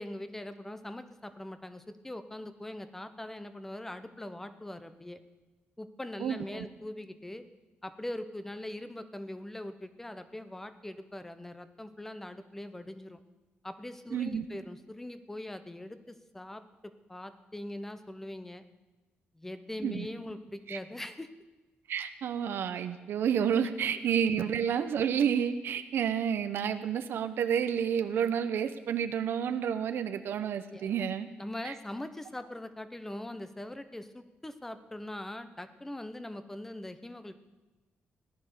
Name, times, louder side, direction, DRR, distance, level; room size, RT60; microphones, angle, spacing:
voice 1, 0.0-5.2 5.8-7.4 7.8-13.2 13.6-18.6 19.3-21.3 30.7-31.0 31.4-37.3, left 1 dB, 10° left, 11 dB, 0.8 m, -42 dB
voice 2, 6.2-6.7 14.1-14.5 19.8-20.1 20.7-20.8 21.9-31.3 31.6-31.7, right 8 dB, 70° right, 9 dB, 0.9 m, -30 dB
18.0 x 11.0 x 6.8 m, 1.2 s
wide cardioid pair, 155°, 4 cm